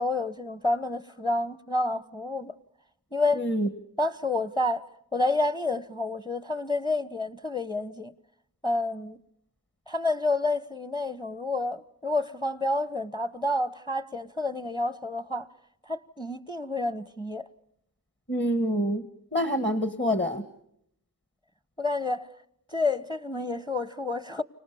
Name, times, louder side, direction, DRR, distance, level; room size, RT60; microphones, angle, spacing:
voice 1, 0.0-2.5 3.1-3.5 4.0-4.8 5.1-8.1 8.6-9.2 9.9-15.5 15.9-17.5 21.8-22.3 22.7-24.4, left 2 dB, 10° left, 1.2 m, -29 dB
voice 2, 3.4-3.7 18.3-19.0 19.3-20.4, equal, 30° left, 1.9 m, -26 dB
29.5 x 26.0 x 7.1 m
cardioid pair, 60°, 39 cm